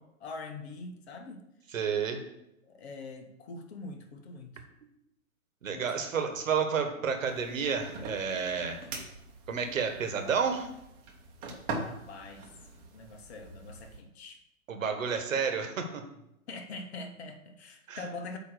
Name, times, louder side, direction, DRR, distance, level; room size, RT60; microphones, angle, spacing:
voice 1, 0.2-1.4 2.6-4.6 5.7-6.4 11.8-12.5 12.8-14.4 16.5-18.4, left 3 dB, 50° left, 5 dB, 1.2 m, -44 dB
voice 2, 1.7-2.2 5.6-8.8 9.5-10.7 14.7-16.0 17.9-18.0, right 6 dB, 65° right, 6 dB, 1.4 m, -30 dB
sound 1, 7.2-14.0, right 3 dB, 20° right, 1.0 m, -43 dB
8.3 x 3.0 x 6.3 m, 0.82 s
hypercardioid pair, 135°, 42 cm